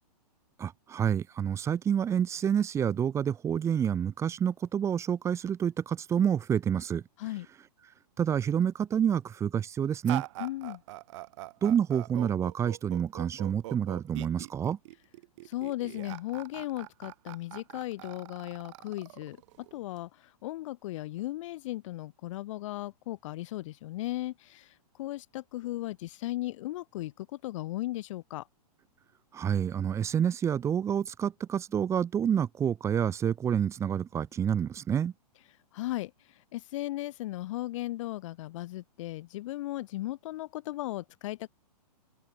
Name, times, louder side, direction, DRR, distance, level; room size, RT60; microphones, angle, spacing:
voice 1, 0.6-7.0 8.2-10.2 11.6-14.8 29.3-35.1, right 8 dB, 15° right, 0.8 m, -28 dB
sound 1, 10.0-20.0, right 18 dB, 45° right, 2.1 m, -42 dB
voice 2, 10.4-10.8 15.4-28.5 35.7-41.5, left 16 dB, 50° left, 1.3 m, -36 dB
open air
hypercardioid pair, 140°, 21 cm